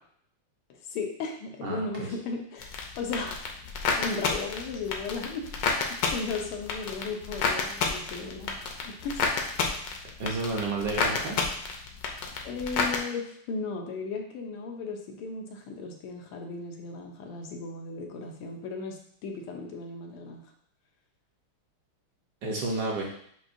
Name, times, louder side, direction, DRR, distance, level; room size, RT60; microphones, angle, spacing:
voice 1, 0.9-3.4 4.0-9.3 12.4-20.4, left 4 dB, 85° left, 2 dB, 1.7 m, -36 dB
voice 2, 1.6-2.1 10.0-11.4 22.4-23.1, right 3 dB, 65° right, -2 dB, 1.2 m, -31 dB
sound 1, 2.6-13.0, left 5 dB, 70° left, 1.2 m, -30 dB
7.7 x 2.6 x 2.5 m, 0.66 s
omnidirectional pair, 2.4 m